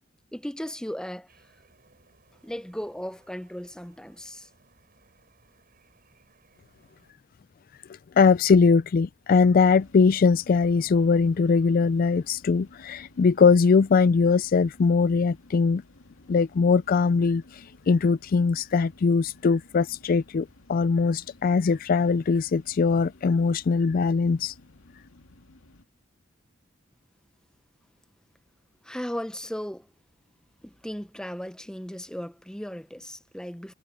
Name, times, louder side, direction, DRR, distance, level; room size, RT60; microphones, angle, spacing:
voice 1, 0.3-1.3 2.4-4.5 28.8-29.9 30.6-33.7, equal, 5° left, 0.8 m, -36 dB
sound 1, 1.3-7.1, right 3 dB, 45° right, 6.0 m, -62 dB
voice 2, 8.2-15.8 16.3-24.5, left 5 dB, 45° left, 0.3 m, -21 dB
sound 2, 9.7-25.8, left 2 dB, 80° left, 2.2 m, -54 dB
head